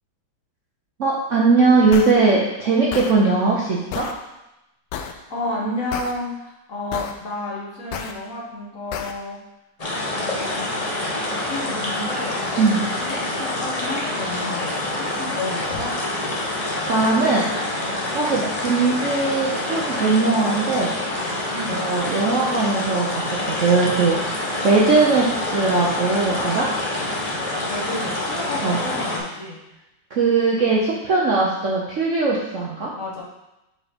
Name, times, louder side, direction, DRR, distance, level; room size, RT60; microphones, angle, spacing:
voice 1, 1.0-4.1 12.6-12.9 16.9-17.5 18.1-21.0 21.7-26.7 28.6-28.8 30.1-32.9, right 3 dB, 55° right, -4 dB, 0.9 m, -20 dB
sound 1, 1.9-2.1 2.9-3.1 3.9-4.1 4.9-5.1 5.9-6.1 6.9-7.1 7.9-8.1 8.9-9.1, left 8 dB, 75° left, 1.1 m, -30 dB
voice 2, 5.3-9.4 10.2-10.7 11.2-12.4 13.0-15.9 21.5-21.9 27.6-29.6 33.0-33.2, left 2 dB, 45° left, -4 dB, 1.6 m, -31 dB
sound 2, 9.8-29.2, left 1 dB, 25° left, 0.9 m, -26 dB
5.0 x 4.8 x 5.1 m, 0.93 s
omnidirectional pair, 2.1 m